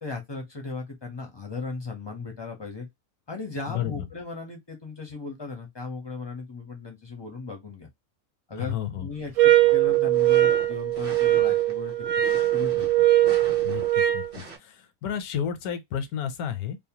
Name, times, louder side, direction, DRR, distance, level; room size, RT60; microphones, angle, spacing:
voice 1, 0.0-2.9 3.3-7.9 8.5-8.8 9.0-12.1 12.5-13.0, left 3 dB, 40° left, 0.3 m, -37 dB
voice 2, 3.7-4.1 8.6-9.1 13.6-14.2 14.6-16.8, left 9 dB, 85° left, 1.1 m, -31 dB
sound 1, 9.4-14.3, right 14 dB, 75° right, 1.0 m, -21 dB
sound 2, 9.6-14.6, right 3 dB, 45° right, 0.9 m, -42 dB
2.7 x 2.1 x 2.7 m
omnidirectional pair, 1.6 m